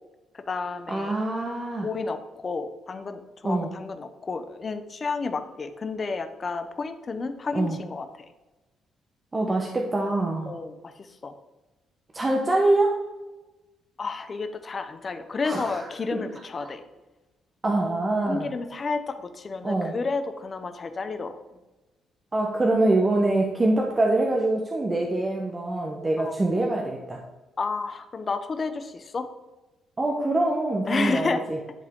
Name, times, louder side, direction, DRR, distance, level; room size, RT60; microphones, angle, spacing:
voice 1, 0.3-1.1 1.8-8.2 10.5-11.3 14.0-16.8 18.3-21.4 26.2-26.4 27.6-29.3 30.9-31.4, left 4 dB, 40° left, 8 dB, 0.8 m, -31 dB
voice 2, 0.9-1.9 3.4-3.7 7.5-7.8 9.3-10.5 12.1-13.1 15.4-15.8 16.1-16.2 17.6-18.5 19.6-20.0 22.3-27.2 30.0-31.6, right 2 dB, 25° right, 0 dB, 1.0 m, -24 dB
11.0 x 3.7 x 3.6 m, 1.1 s
cardioid pair, 90°, 0 cm